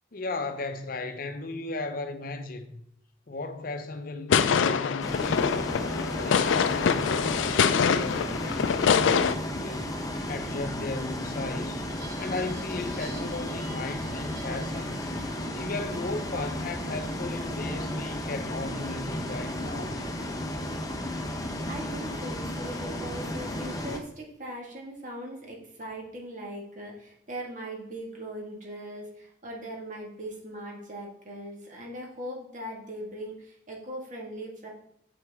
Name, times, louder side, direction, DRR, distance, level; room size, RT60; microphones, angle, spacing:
voice 1, 0.1-2.8 3.3-5.8 6.2-10.0 10.3-11.8 12.2-15.1 15.5-20.0, left 3 dB, 50° left, 0.7 m, -36 dB
sound 1, 4.3-9.3, left 6 dB, 90° left, 0.4 m, -24 dB
Bus, 5.0-24.0, left 1 dB, 20° left, 0.7 m, -34 dB
sound 2, 11.9-19.3, right 2 dB, 75° right, 2.5 m, -51 dB
voice 2, 21.6-34.7, right 1 dB, 45° right, 1.7 m, -40 dB
7.0 x 6.1 x 3.5 m
head